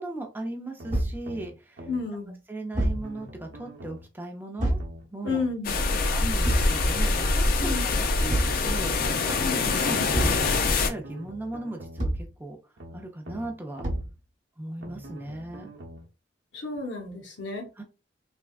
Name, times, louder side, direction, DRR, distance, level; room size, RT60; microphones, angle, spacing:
voice 1, 0.0-1.9 2.5-4.8 5.1-5.4 6.1-7.8 8.2-8.4 8.6-12.6 12.9-13.9 14.6-15.7 17.8-17.9, right 2 dB, 10° right, 0.5 m, -37 dB
sound 1, 0.8-2.0 2.8-4.1 4.8-6.0 6.8-8.1 8.8-10.0 10.8-12.1 12.8-14.0 14.8-16.1 16.8-16.9, right 1 dB, 85° right, 0.7 m, -44 dB
Thump thud, 0.9-1.2 2.7-3.1 4.6-4.9 6.4-6.8 8.3-8.6 10.1-10.5 12.0-12.3 13.8-14.2, right 1 dB, 45° right, 1.1 m, -26 dB
voice 2, 1.9-2.3 5.2-6.0 7.6-8.0 9.4-9.7 16.5-17.7, left 3 dB, 80° left, 1.0 m, -32 dB
sound 2, 5.6-10.9, left 3 dB, 50° left, 0.4 m, -24 dB
3.4 x 2.2 x 2.4 m
head